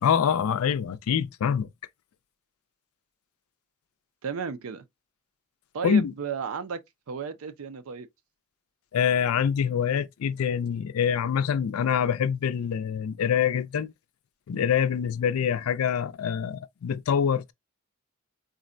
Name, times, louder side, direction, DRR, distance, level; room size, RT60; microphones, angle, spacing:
voice 1, 0.0-1.7 5.8-6.1 8.9-13.9 14.5-17.5, left 7 dB, 85° left, 0.4 m, -25 dB
voice 2, 4.2-4.8 5.7-6.8 7.1-8.1, right 6 dB, 75° right, 0.5 m, -33 dB
3.8 x 2.1 x 2.5 m
head